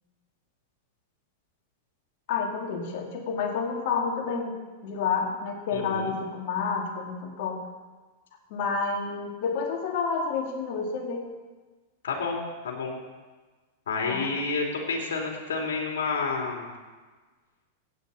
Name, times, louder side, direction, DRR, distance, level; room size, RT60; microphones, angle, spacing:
voice 1, 2.3-7.6 8.5-11.3 14.1-14.3, left 5 dB, 60° left, 1 dB, 2.6 m, -29 dB
voice 2, 5.7-6.1 12.0-13.0 13.9-16.7, left 4 dB, 80° left, 0 dB, 3.2 m, -30 dB
16.0 x 9.3 x 4.3 m, 1.3 s
hypercardioid pair, 110°, 0 cm